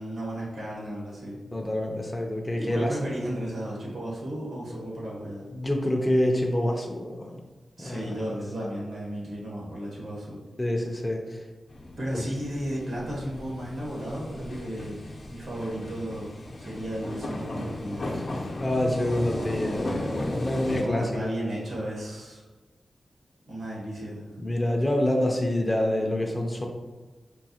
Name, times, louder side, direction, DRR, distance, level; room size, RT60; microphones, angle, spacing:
voice 1, 0.0-1.4 2.6-5.5 7.8-10.4 12.0-16.3 16.6-18.2 20.7-22.4 23.5-24.2, right 1 dB, 80° right, -5 dB, 1.4 m, -34 dB
voice 2, 1.5-3.1 5.6-7.4 7.8-8.2 8.6-8.7 10.6-11.4 12.1-12.2 18.6-21.3 24.4-26.7, left 1 dB, 15° left, 0 dB, 0.5 m, -27 dB
sound 1, 11.7-20.8, left 1 dB, 60° left, 0.7 m, -35 dB
4.6 x 2.7 x 2.8 m, 1.3 s
wide cardioid pair, 120°, 0 cm